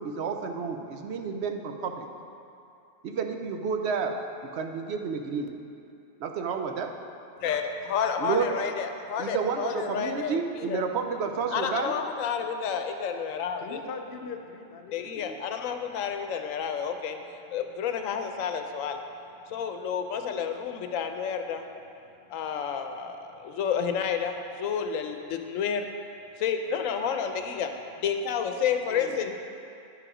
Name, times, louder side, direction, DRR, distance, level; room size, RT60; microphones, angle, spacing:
voice 1, 0.0-2.1 3.0-4.2 4.5-5.5 6.2-6.9 8.2-8.6 9.2-12.0, right 5 dB, 65° right, 5 dB, 0.8 m, -30 dB
voice 2, 7.4-10.8 11.5-13.8 14.9-17.2 17.5-19.0 19.5-21.6 22.3-25.9 26.4-27.7 28.0-29.4, left 7 dB, 90° left, 6 dB, 1.0 m, -30 dB
voice 3, 13.6-15.5 28.9-29.4, left 4 dB, 60° left, 5 dB, 0.7 m, -41 dB
10.5 x 4.9 x 4.9 m, 2.6 s
omnidirectional pair, 1.4 m